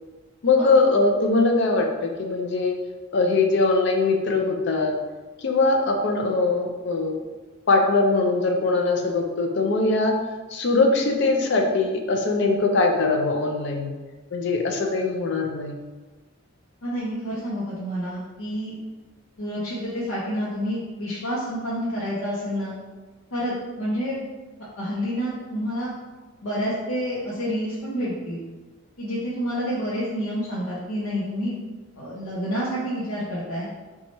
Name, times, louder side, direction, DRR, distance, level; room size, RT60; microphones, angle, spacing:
voice 1, 0.4-2.8 3.1-4.9 5.4-7.2 7.7-10.1 10.5-14.0 14.3-15.7, left 3 dB, 55° left, 3 dB, 0.4 m, -21 dB
voice 2, 16.8-18.7 19.4-22.7 23.3-24.2 24.8-25.9 26.4-28.4 29.0-31.6 32.0-33.7, equal, 85° left, -7 dB, 0.7 m, -28 dB
3.0 x 2.3 x 4.0 m, 1.3 s
head